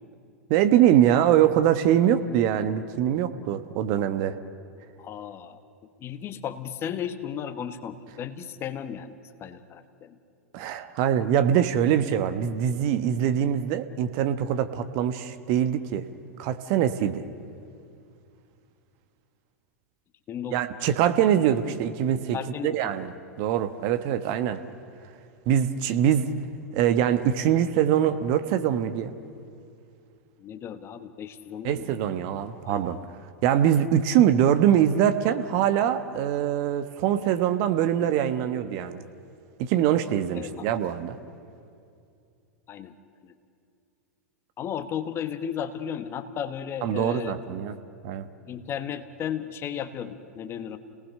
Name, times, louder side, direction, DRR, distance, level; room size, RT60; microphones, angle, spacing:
voice 1, 0.5-4.3 10.5-16.0 16.4-17.2 20.5-22.4 22.6-23.1 23.4-24.6 25.5-26.3 26.7-29.1 31.6-33.0 33.4-39.0 39.6-41.2 46.8-47.8 48.0-48.3, right 10 dB, 45° right, 10 dB, 1.2 m, -23 dB
voice 2, 5.0-5.6 6.0-9.1 9.4-10.2 20.3-20.6 22.3-22.9 30.4-31.9 32.5-32.9 40.3-40.7 42.7-42.9 43.2-43.4 44.6-47.3 48.5-50.8, left 8 dB, 30° left, 10 dB, 1.3 m, -34 dB
29.5 x 18.5 x 6.7 m, 2.4 s
figure-of-eight pair, 100°, 8 cm